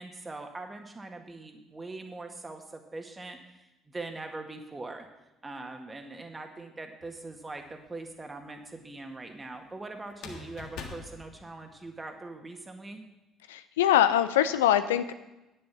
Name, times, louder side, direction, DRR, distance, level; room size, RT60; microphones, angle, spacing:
voice 1, 0.0-5.1 5.4-13.0, right 2 dB, 20° right, 5 dB, 1.8 m, -42 dB
sound 1, 7.0-7.7 10.1-12.1, left 5 dB, 60° left, 1.6 m, -45 dB
voice 2, 13.5-15.1, left 11 dB, 75° left, 12 dB, 0.5 m, -23 dB
10.0 x 6.9 x 7.2 m, 1.0 s
figure-of-eight pair, 50°, 0 cm